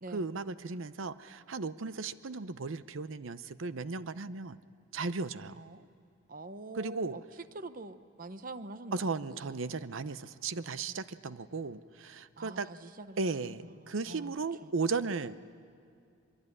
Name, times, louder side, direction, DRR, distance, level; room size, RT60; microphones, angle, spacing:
voice 1, 0.1-4.6 4.9-5.6 6.7-7.2 8.9-12.7 13.2-15.4, right 4 dB, 75° right, 14 dB, 0.7 m, -36 dB
voice 2, 5.6-5.9 6.3-9.8 12.4-13.5 13.8-14.3 14.6-14.7, right 2 dB, 45° right, 12 dB, 0.8 m, -46 dB
23.0 x 23.0 x 9.9 m, 2.4 s
head